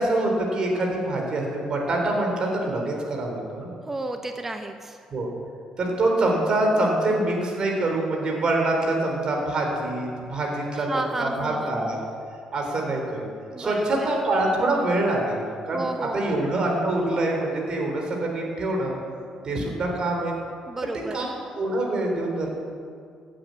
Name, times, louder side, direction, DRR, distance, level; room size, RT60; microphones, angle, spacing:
voice 1, 0.0-3.7 5.1-5.3 5.8-12.0 12.5-13.3 13.6-15.8 16.1-19.0 19.4-20.4 20.8-22.5, right 2 dB, 45° right, 0 dB, 3.6 m, -25 dB
voice 2, 3.9-5.0 10.7-12.1 13.5-14.1 15.7-16.5 20.7-21.3, right 2 dB, 15° right, 6 dB, 0.9 m, -32 dB
16.0 x 8.9 x 9.4 m, 2.3 s
cardioid pair, 120°, 2 cm